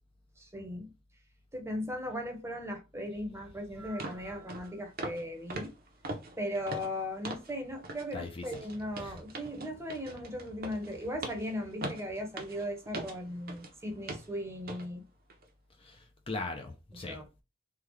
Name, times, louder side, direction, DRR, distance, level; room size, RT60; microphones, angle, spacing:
voice 1, 0.4-0.9 1.5-5.7 6.4-15.0 16.9-17.2, equal, 15° right, 0.8 m, -38 dB
sound 1, 3.4-3.5 4.0-4.2 4.5-4.7 5.0-5.2 5.5-7.5 7.8-8.1 8.4-13.7 14.1-14.3 14.7-14.9 15.3-15.4, right 2 dB, 50° right, 0.7 m, -41 dB
voice 2, 8.1-8.5 9.0-9.2 15.8-17.4, left 3 dB, 30° left, 0.5 m, -40 dB
3.6 x 2.3 x 3.1 m
head